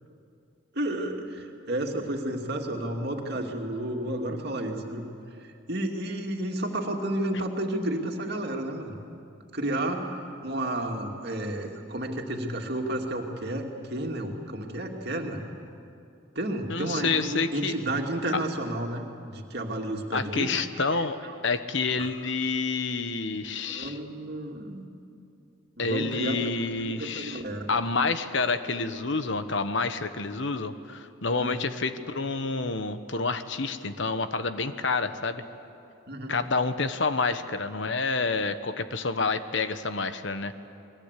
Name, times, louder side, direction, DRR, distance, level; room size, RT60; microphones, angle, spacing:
voice 1, 0.7-5.1 5.4-9.0 9.5-10.1 10.4-15.5 16.3-20.6 20.9-21.3 22.0-22.1 23.3-24.9 25.8-26.4 26.8-27.8 31.3-31.6 36.1-36.4, right 1 dB, 50° right, 2 dB, 2.6 m, -32 dB
voice 2, 16.7-17.7 20.1-21.2 21.4-24.0 25.8-27.4 27.7-35.4 36.3-40.5, left 4 dB, 65° left, 10 dB, 1.1 m, -28 dB
29.0 x 22.0 x 8.3 m, 2.6 s
head